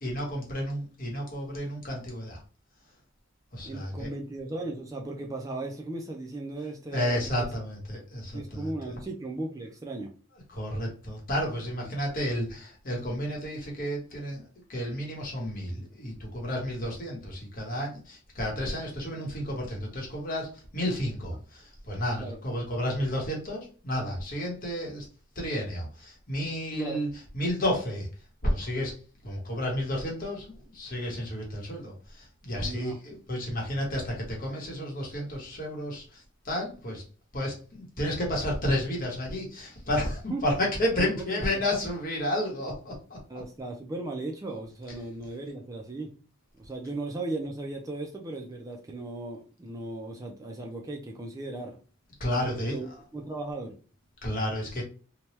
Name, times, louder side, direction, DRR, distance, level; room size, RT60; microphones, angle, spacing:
voice 1, 0.0-2.4 3.5-4.1 6.9-8.7 10.5-25.1 25.3-27.1 27.3-28.1 28.4-37.0 37.3-43.2 52.2-52.8 54.2-54.8, left 1 dB, 45° left, -1 dB, 1.1 m, -31 dB
voice 2, 3.6-7.5 8.3-10.1 11.8-11.9 22.2-22.4 26.7-27.0 32.6-33.0 40.3-40.4 41.0-41.1 41.3-41.4 41.7-41.9 43.3-46.1 46.5-51.8 52.5-52.9 53.1-53.8, right 2 dB, 15° right, 1 dB, 0.4 m, -36 dB
2.9 x 2.2 x 3.1 m, 0.37 s
head